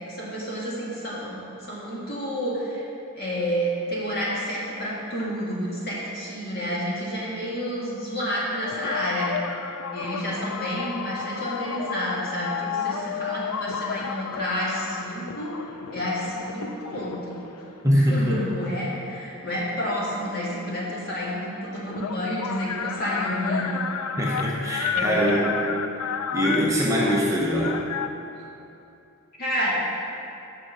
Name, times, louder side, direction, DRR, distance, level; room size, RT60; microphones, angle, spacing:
voice 1, 0.1-2.8 3.1-9.3 9.9-15.5 15.9-17.4 17.9-23.8 24.9-25.5 29.4-29.8, equal, 45° left, -7 dB, 2.1 m, -30 dB
sound 1, 8.6-17.5 18.1-19.8 21.0-21.1 21.3-28.1, left 7 dB, 85° left, 0.4 m, -32 dB
voice 2, 17.8-18.4 24.2-25.6 26.3-27.8, equal, 15° right, -4 dB, 0.7 m, -23 dB
7.7 x 5.8 x 6.4 m, 2.8 s
head